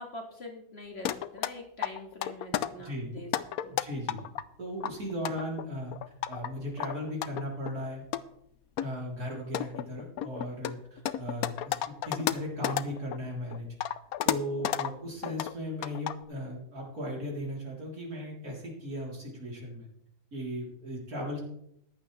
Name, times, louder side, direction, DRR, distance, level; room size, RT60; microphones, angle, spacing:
voice 1, 0.0-3.3 3.6-3.8, left 1 dB, 45° left, 1 dB, 2.4 m, -44 dB
sound 1, 1.1-1.5 1.8-2.7 3.2-4.4 4.8-6.5 6.8-7.7 8.1-8.2 8.8-8.9 9.3-13.2 13.5-14.9 15.2-15.5 15.8-16.2, left 11 dB, 85° left, 1.1 m, -32 dB
voice 2, 2.8-3.1 3.7-4.3 4.6-5.9 6.3-8.0 8.8-11.8 12.0-13.7 14.2-19.9 20.3-21.4, equal, 85° right, -3 dB, 4.2 m, -37 dB
15.0 x 11.0 x 3.3 m, 0.73 s
omnidirectional pair, 1.5 m